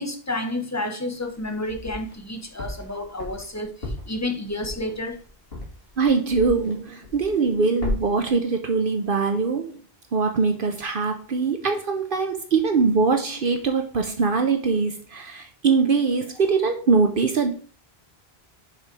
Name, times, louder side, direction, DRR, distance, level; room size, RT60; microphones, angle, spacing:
voice 1, 0.0-5.2, left 1 dB, 15° left, 1.1 m, -30 dB
sound 1, 1.2-2.2 2.6-6.8 7.0-7.5 7.8-8.3, left 2 dB, 70° left, 2.6 m, -34 dB
voice 2, 6.0-9.7 10.1-17.5, right 4 dB, 60° right, 1.0 m, -22 dB
6.7 x 4.9 x 4.7 m
omnidirectional pair, 1.0 m